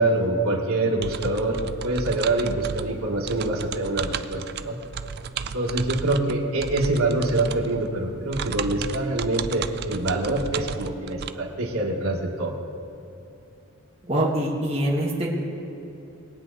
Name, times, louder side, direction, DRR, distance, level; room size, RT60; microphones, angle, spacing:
voice 1, 0.0-4.8 5.4-12.6, right 2 dB, 85° right, -1 dB, 1.8 m, -25 dB
sound 1, 1.0-11.3, right 6 dB, 50° right, 0.4 m, -34 dB
voice 2, 14.0-15.3, right 1 dB, 25° right, -6 dB, 1.8 m, -24 dB
21.5 x 8.5 x 4.1 m, 2.9 s
head